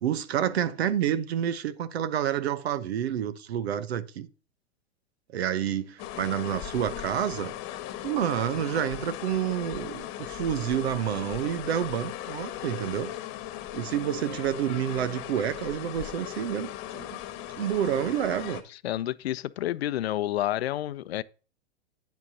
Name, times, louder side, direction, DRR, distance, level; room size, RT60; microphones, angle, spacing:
voice 1, 0.0-4.3 5.3-7.5 8.0-13.1 13.7-17.2 17.6-18.6, right 10 dB, 70° right, 1.0 m, -29 dB
sound 1, 6.0-18.6, left 12 dB, 40° left, 1.3 m, -38 dB
voice 2, 18.8-21.2, left 13 dB, 70° left, 0.6 m, -29 dB
9.5 x 7.5 x 2.8 m
hypercardioid pair, 110°, 33 cm